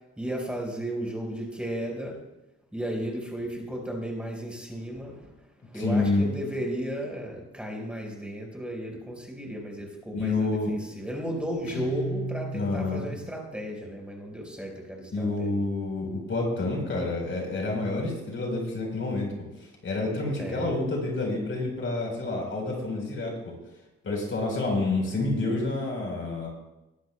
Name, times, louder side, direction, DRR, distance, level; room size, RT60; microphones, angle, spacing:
voice 1, 0.2-2.1 2.7-5.3 5.7-15.6 20.4-20.7, equal, 5° right, 0 dB, 4.6 m, -34 dB
voice 2, 5.7-6.2 10.1-10.7 12.5-13.1 15.1-19.3 19.6-23.3 24.0-26.5, left 2 dB, 40° left, 0 dB, 4.1 m, -28 dB
Guitar, 11.7-13.4, right 1 dB, 65° left, 4.0 m, -35 dB
20.5 x 12.0 x 2.2 m, 0.97 s
cardioid pair, 90°, 30 cm